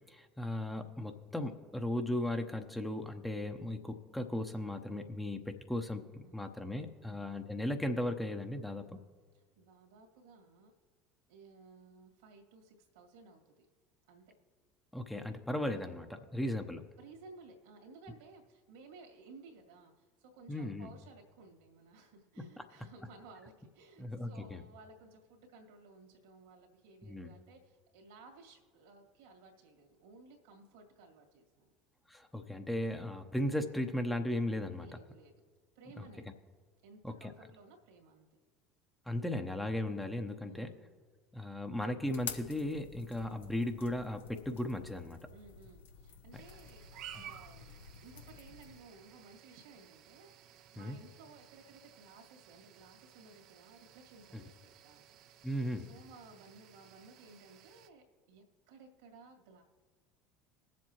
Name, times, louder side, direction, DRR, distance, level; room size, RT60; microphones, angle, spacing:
voice 1, 0.1-9.0 14.9-16.8 20.5-20.9 22.4-22.6 24.0-24.6 27.0-27.3 32.1-34.9 36.0-36.1 37.0-37.3 39.1-40.7 41.3-45.2 47.2-47.3 50.8-51.0 54.3-54.4 55.4-55.9, left 1 dB, 5° left, 5 dB, 0.8 m, -36 dB
voice 2, 9.3-10.7 11.3-13.7 14.1-14.2 17.0-31.7 34.8-35.3 35.8-36.3 36.8-38.3 40.4-40.9 45.3-55.5 55.9-59.6, right 3 dB, 75° right, 2 dB, 2.1 m, -57 dB
sound 1, 42.0-48.8, left 7 dB, 80° left, 0.8 m, -49 dB
sound 2, 46.3-57.9, right 10 dB, 60° right, 0.6 m, -56 dB
20.5 x 7.4 x 3.0 m, 1.5 s
hypercardioid pair, 75°, 0 cm